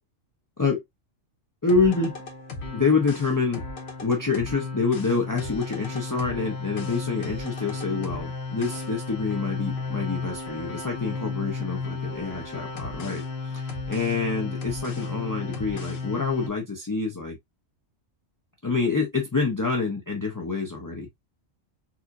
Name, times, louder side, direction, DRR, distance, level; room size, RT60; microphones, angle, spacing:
voice 1, 1.6-2.1 2.7-3.6 4.0-17.4 18.6-21.2, left 4 dB, 30° left, 0.4 m, -27 dB
sound 1, 1.7-16.5, left 4 dB, 55° left, 1.0 m, -34 dB
4.2 x 2.5 x 2.3 m
omnidirectional pair, 1.4 m